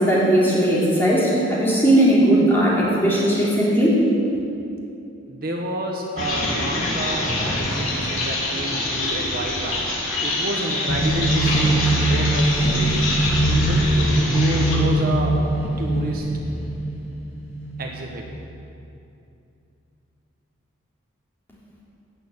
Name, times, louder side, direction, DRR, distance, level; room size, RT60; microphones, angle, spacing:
voice 1, 0.0-4.0, right 1 dB, 10° left, -8 dB, 3.3 m, -18 dB
voice 2, 5.3-7.3 7.6-9.8 10.2-13.2 13.5-15.4 15.8-16.3 17.8-18.3, right 1 dB, 45° right, 0 dB, 1.1 m, -29 dB
sound 1, 6.2-14.8, left 2 dB, 85° left, 3.3 m, -26 dB
sound 2, 10.9-18.4, right 1 dB, 60° left, 2.7 m, -22 dB
16.0 x 6.5 x 8.6 m, 2.7 s
head